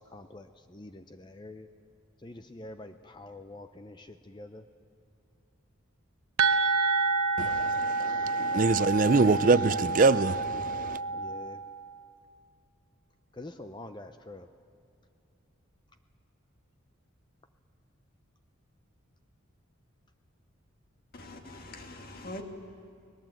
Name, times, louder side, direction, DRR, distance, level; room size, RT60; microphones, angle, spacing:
voice 1, 0.0-1.7 2.2-4.6 11.1-11.6 13.3-14.5, left 2 dB, 20° left, 0.5 m, -46 dB
sound 1, 6.4-12.0, right 3 dB, 85° right, 1.0 m, -29 dB
voice 2, 7.4-11.0, right 3 dB, 40° right, 0.4 m, -25 dB
voice 3, 21.1-22.4, left 1 dB, 45° left, 1.8 m, -43 dB
22.5 x 19.5 x 7.8 m
head